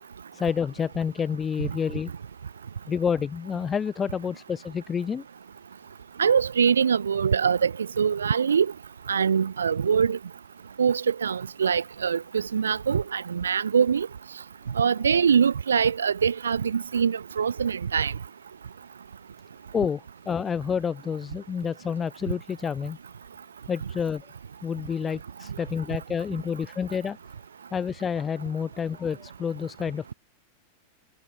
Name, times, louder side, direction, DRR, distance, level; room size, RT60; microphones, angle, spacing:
voice 1, 0.3-2.1 2.9-5.2 19.7-23.0 23.7-24.3 24.6-27.2 27.7-30.1, left 7 dB, 20° left, 5.8 m, -29 dB
voice 2, 6.2-8.7 9.1-10.2 10.8-14.1 14.8-18.1, right 7 dB, 70° right, 3.0 m, -23 dB
figure-of-eight pair, 90°, 0 cm